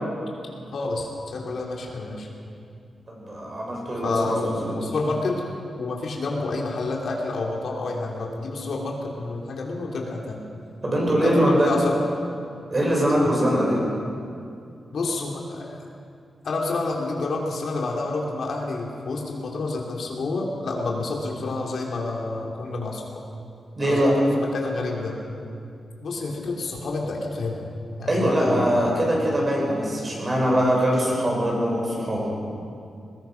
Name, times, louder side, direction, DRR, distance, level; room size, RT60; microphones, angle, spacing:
voice 1, 0.7-2.3 4.0-5.4 5.8-10.4 11.2-12.0 13.2-13.3 14.9-15.8 16.4-23.2 23.8-25.2 26.0-27.7 28.0-29.0, left 3 dB, 60° left, -1 dB, 3.2 m, -29 dB
voice 2, 3.1-4.7 10.8-11.7 12.7-13.8 23.8-24.1 28.1-32.3, equal, 30° right, -3 dB, 6.1 m, -22 dB
22.0 x 20.5 x 5.9 m, 2.4 s
wide cardioid pair, 155°, 0 cm